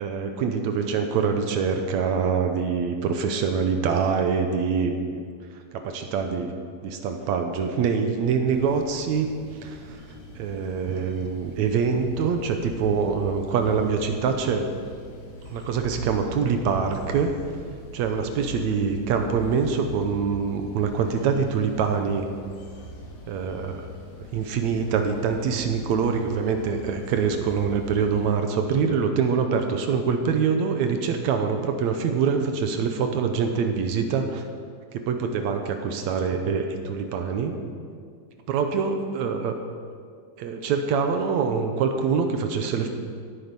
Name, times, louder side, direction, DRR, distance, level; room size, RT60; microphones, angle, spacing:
voice 1, 0.0-5.3 5.7-6.5 6.8-9.3 9.6-10.0 10.4-14.7 15.4-17.3 17.9-22.3 23.3-23.9 24.3-34.5 34.9-37.6 38.5-39.6 40.4-42.9, right 6 dB, 70° right, 5 dB, 1.9 m, -25 dB
sound 1, 8.4-28.3, left 1 dB, 60° left, 2.9 m, -42 dB
16.0 x 9.2 x 5.4 m, 2.1 s
omnidirectional pair, 3.9 m